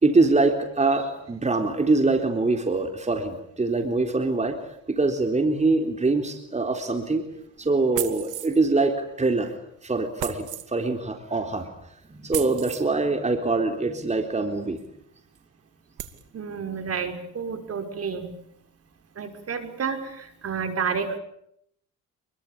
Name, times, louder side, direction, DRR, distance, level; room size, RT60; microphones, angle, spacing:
voice 1, 0.0-4.6 4.9-7.2 7.6-9.6 9.8-11.7 12.1-14.8, right 3 dB, 20° right, 5 dB, 3.8 m, -24 dB
sound 1, 7.9-8.6 10.2-10.7 12.3-12.9 14.8-14.9 15.4-15.5 16.0-16.2, right 13 dB, 85° right, 2.5 m, -33 dB
voice 2, 16.3-18.3 19.2-21.2, right 6 dB, 50° right, 7 dB, 5.8 m, -30 dB
28.0 x 23.0 x 8.7 m, 0.73 s
cardioid pair, 90°, 30 cm